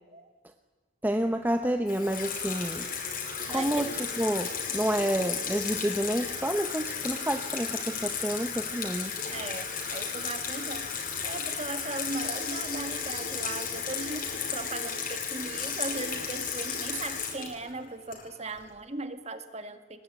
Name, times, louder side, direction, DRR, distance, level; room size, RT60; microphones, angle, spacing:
voice 1, 1.0-2.9 3.5-9.1, equal, 10° right, 7 dB, 0.9 m, -29 dB
Water tap faucet / Sink (filling or washing), 1.9-18.6, left 6 dB, 45° left, 5.2 m, -34 dB
voice 2, 3.4-3.9 9.3-10.9 11.2-20.0, right 2 dB, 35° right, 9 dB, 1.9 m, -38 dB
23.0 x 21.0 x 9.6 m, 1.4 s
head